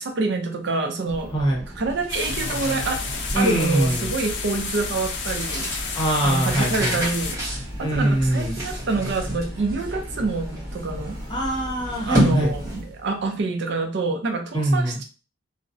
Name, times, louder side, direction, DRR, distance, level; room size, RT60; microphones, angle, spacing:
voice 1, 0.0-1.3 1.8-3.0 3.3-5.7 6.2-7.4 7.8-11.2 12.1-15.0, right 3 dB, 60° right, 5 dB, 0.5 m, -26 dB
sound 1, 1.0-12.8, equal, 45° right, 1.0 m, -39 dB
voice 2, 1.3-1.6 3.3-4.1 5.9-7.0 7.8-8.6 11.3-12.5 14.5-15.0, right 1 dB, 25° left, -2 dB, 0.7 m, -23 dB
sound 2, 1.9-13.1, equal, 15° right, 0.9 m, -30 dB
sound 3, 2.1-7.4, left 5 dB, 60° left, 0.4 m, -31 dB
2.4 x 2.0 x 2.5 m, 0.35 s
head